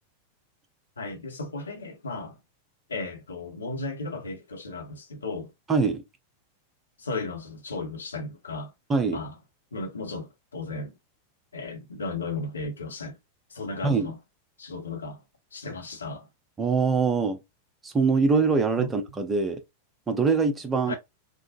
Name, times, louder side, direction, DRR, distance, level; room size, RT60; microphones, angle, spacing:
voice 1, 1.0-2.3 2.9-5.5 7.0-8.7 9.1-9.3 9.7-10.9 11.5-13.2 13.5-14.2 14.6-15.2 15.5-16.2 18.8-18.9 20.9-21.0, left 3 dB, 75° left, 0.9 m, -35 dB
voice 2, 5.7-6.0 8.9-9.2 13.8-14.1 16.6-17.4 17.8-19.6 20.1-20.9, right 4 dB, 20° right, 0.7 m, -23 dB
3.6 x 2.1 x 2.5 m
figure-of-eight pair, 90°, 0 cm